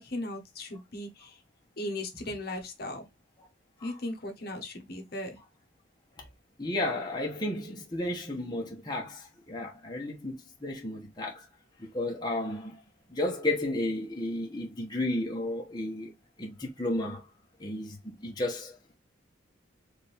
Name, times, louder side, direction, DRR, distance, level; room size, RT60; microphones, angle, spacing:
voice 1, 0.0-1.4 1.8-3.1 3.8-5.4, left 1 dB, 55° left, 1.2 m, -37 dB
voice 2, 6.6-11.4 11.8-12.8 13.1-16.1 16.4-17.2 17.6-19.0, left 1 dB, 20° left, 1.0 m, -33 dB
5.0 x 2.7 x 3.4 m
head